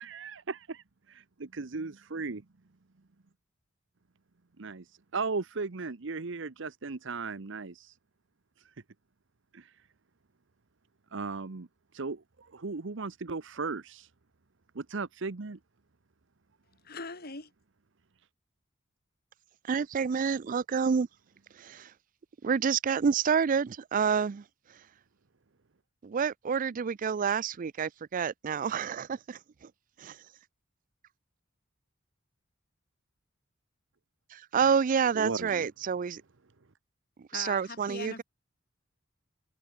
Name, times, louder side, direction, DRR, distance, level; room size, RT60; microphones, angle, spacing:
voice 1, 0.0-2.4 4.6-8.0 8.6-8.7 9.5-9.8 11.1-11.7 11.9-14.1 14.7-15.6 35.1-35.7, right 4 dB, 65° right, 0.9 m, -37 dB
voice 2, 16.8-17.5 37.3-38.2, left 4 dB, 50° left, 3.7 m, -41 dB
voice 3, 19.7-21.1 21.6-21.9 22.4-24.4 26.0-29.4 30.0-30.2 34.3-36.2 37.3-38.2, right 6 dB, 40° right, 0.4 m, -28 dB
head